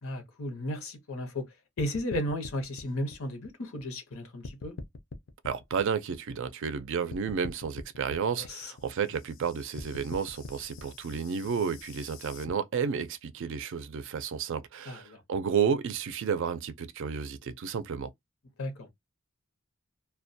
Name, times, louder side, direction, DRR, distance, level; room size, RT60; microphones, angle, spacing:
voice 1, 0.0-1.5 1.8-4.7 8.5-8.7 14.9-15.2 18.6-18.9, left 1 dB, 85° left, 0.8 m, -34 dB
sound 1, 1.8-4.1 4.4-6.8 7.1-12.5, left 3 dB, 65° left, 0.5 m, -44 dB
voice 2, 5.4-18.1, right 6 dB, 65° right, 0.4 m, -31 dB
2.2 x 2.2 x 2.6 m
head